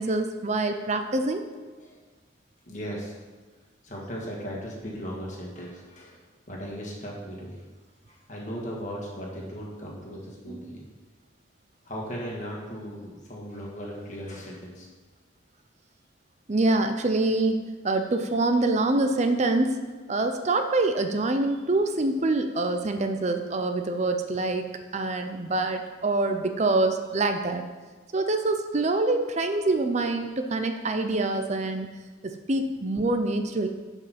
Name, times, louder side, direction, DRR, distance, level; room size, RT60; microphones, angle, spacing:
voice 1, 0.0-1.5 10.5-10.8 16.5-19.8 20.1-27.6 28.1-31.9 32.2-33.7, right 2 dB, 35° right, 6 dB, 0.5 m, -25 dB
voice 2, 2.7-3.2 3.8-6.2 6.5-7.6 8.3-10.9 11.9-14.9, equal, 35° left, -3 dB, 1.8 m, -37 dB
10.5 x 5.4 x 4.3 m, 1.3 s
head